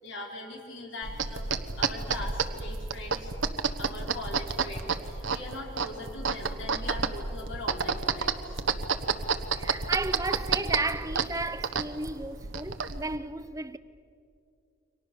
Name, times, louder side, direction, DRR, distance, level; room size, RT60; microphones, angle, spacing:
voice 1, 0.0-1.5 1.8-3.3 3.8-8.6, left 2 dB, 65° left, 4.3 m, -41 dB
sound 1, 1.0-13.2, right 5 dB, 70° right, 1.2 m, -31 dB
voice 2, 9.6-13.8, right 2 dB, 15° right, 0.7 m, -33 dB
29.5 x 24.5 x 7.0 m
head